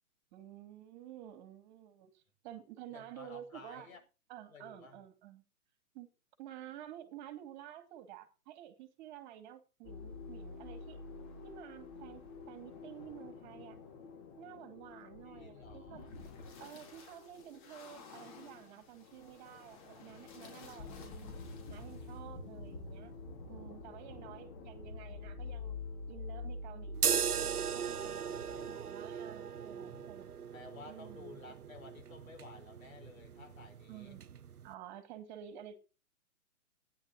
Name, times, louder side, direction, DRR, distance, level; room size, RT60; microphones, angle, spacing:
voice 1, 0.3-3.9 4.3-5.4 5.9-6.1 6.4-11.0 11.4-13.8 14.4-16.1 16.6-21.3 21.7-23.1 23.4-25.8 26.1-27.3 27.7-30.3 30.9-31.6 33.9-34.3 34.6-35.8, right 11 dB, 30° right, 2.4 m, -51 dB
voice 2, 2.9-4.0 4.5-5.0 15.2-16.2 28.2-28.9 29.7-30.1 30.5-34.2, left 4 dB, 65° left, 5.6 m, -54 dB
sound 1, 9.8-28.8, left 3 dB, 35° left, 4.1 m, -48 dB
sound 2, 26.9-34.7, right 7 dB, 85° right, 0.9 m, -38 dB
15.0 x 10.0 x 3.9 m
hypercardioid pair, 135°, 44 cm